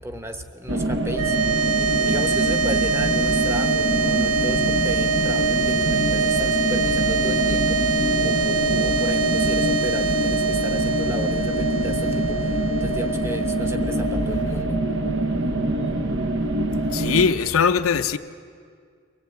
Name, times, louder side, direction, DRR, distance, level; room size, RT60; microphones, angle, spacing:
voice 1, 0.0-14.8, equal, 10° right, 1.0 m, -35 dB
sound 1, 0.7-17.3, right 1 dB, 60° right, 1.0 m, -25 dB
sound 2, 1.1-15.5, right 4 dB, 90° right, 1.1 m, -24 dB
voice 2, 16.9-18.2, left 6 dB, 85° left, 0.7 m, -20 dB
23.5 x 17.0 x 8.2 m
head